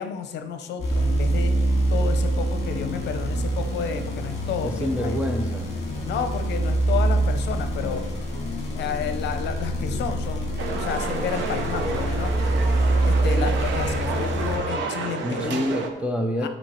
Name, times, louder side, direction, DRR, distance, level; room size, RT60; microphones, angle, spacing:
voice 1, 0.0-1.6 1.9-5.2 6.0-8.0 8.7-12.3 13.0-15.7 16.4-16.5, left 7 dB, 60° left, 8 dB, 0.8 m, -31 dB
sound 1, 0.8-14.6, right 1 dB, 35° left, 2.0 m, -25 dB
voice 2, 4.6-5.7 7.8-8.0 15.2-16.5, equal, 5° right, 1 dB, 0.5 m, -27 dB
sound 2, 10.6-15.9, right 4 dB, 65° right, 1.0 m, -30 dB
12.0 x 4.5 x 4.4 m, 1.0 s
cardioid pair, 170°, 20 cm